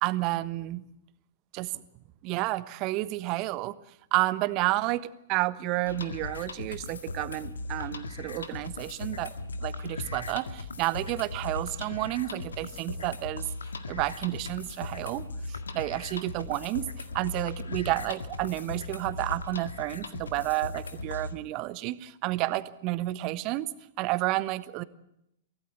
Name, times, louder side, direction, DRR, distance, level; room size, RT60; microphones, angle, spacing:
voice 1, 0.0-0.8 1.5-1.8 2.2-3.8 4.1-9.3 9.6-13.5 13.9-16.9 17.1-23.7 24.0-24.8, right 18 dB, 40° right, 15 dB, 1.2 m, -30 dB
sound 1, 5.9-21.3, left 3 dB, 75° left, 1.8 m, -38 dB
24.0 x 17.0 x 8.2 m, 0.79 s
figure-of-eight pair, 105°, 0 cm